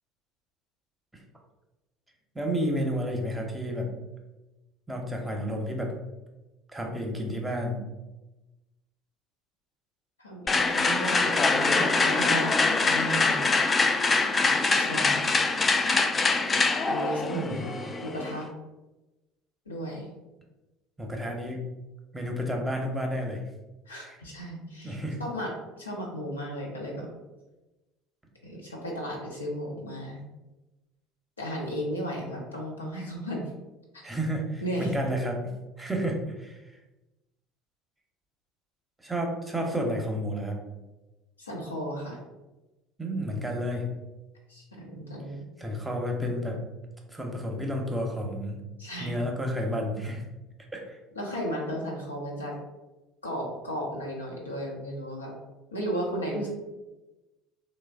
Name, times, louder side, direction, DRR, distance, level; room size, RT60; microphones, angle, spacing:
voice 1, 2.3-3.9 4.9-5.9 6.7-7.8 17.3-17.8 21.0-21.6 22.1-23.4 24.1-24.2 24.8-25.2 34.0-35.5 35.8-36.6 39.0-40.6 43.0-43.9 45.6-46.6 47.1-48.6 49.0-50.2 50.7-51.0, equal, 10° right, 1 dB, 0.7 m, -31 dB
voice 2, 10.2-12.5 12.8-13.4 14.7-15.2 16.9-17.7 18.0-18.5 19.7-20.1 23.9-25.5 25.8-27.1 28.4-30.2 31.4-33.4 33.9-34.1 34.6-35.0 41.4-42.2 44.5-45.4 48.8-49.2 51.2-52.5 53.2-55.3 55.7-56.5, equal, 90° left, -2 dB, 0.7 m, -34 dB
sound 1, 10.5-18.4, left 3 dB, 25° left, 0.3 m, -24 dB
3.1 x 2.0 x 3.4 m, 1.1 s
figure-of-eight pair, 65°, 0 cm